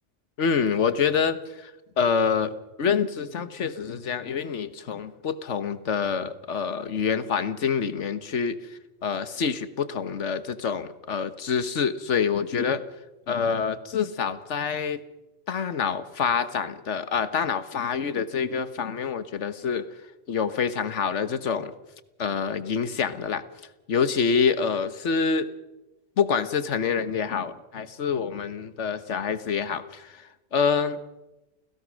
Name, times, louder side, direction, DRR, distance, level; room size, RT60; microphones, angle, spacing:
voice 1, 0.4-1.7 2.0-2.5 2.8-12.8 13.3-15.0 15.5-19.9 20.3-21.7 22.2-23.4 23.9-25.5 26.2-31.0, left 6 dB, 75° left, 12 dB, 1.5 m, -26 dB
29.5 x 17.0 x 6.4 m, 1.0 s
omnidirectional pair, 1.2 m